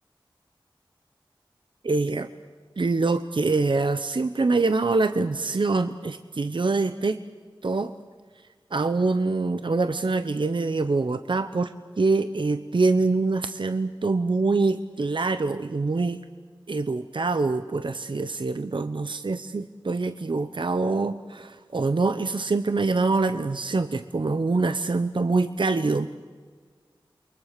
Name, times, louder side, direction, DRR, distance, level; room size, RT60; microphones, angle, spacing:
voice 1, 1.8-2.3 2.8-7.2 7.6-7.9 8.7-16.2 16.7-26.1, right 3 dB, 65° right, 10 dB, 0.8 m, -25 dB
29.0 x 23.5 x 6.7 m, 1.6 s
wide cardioid pair, 65°, 9 cm